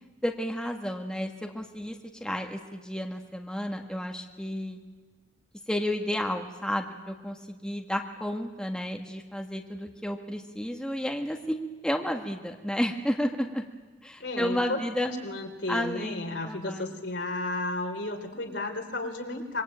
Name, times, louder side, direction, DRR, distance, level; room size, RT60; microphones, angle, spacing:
voice 1, 0.2-4.8 5.7-13.6 14.0-15.1 15.7-17.0, equal, 5° left, 3 dB, 1.7 m, -32 dB
voice 2, 14.2-19.6, left 2 dB, 70° left, 3 dB, 4.0 m, -33 dB
26.0 x 24.0 x 9.0 m, 1.3 s
head